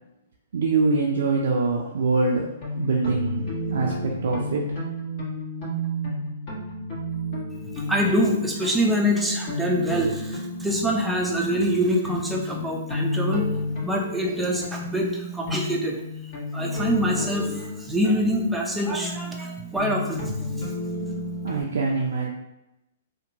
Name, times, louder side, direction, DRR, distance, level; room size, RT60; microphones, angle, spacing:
voice 1, 0.5-4.8 21.4-22.3, right 4 dB, 70° right, -2 dB, 0.4 m, -24 dB
sound 1, 2.4-21.6, left 1 dB, 45° left, 1.2 m, -32 dB
voice 2, 7.9-13.5 13.8-16.0 16.2-20.5, equal, 5° right, -1 dB, 0.5 m, -25 dB
2.7 x 2.2 x 2.7 m, 0.90 s
hypercardioid pair, 125°, 0 cm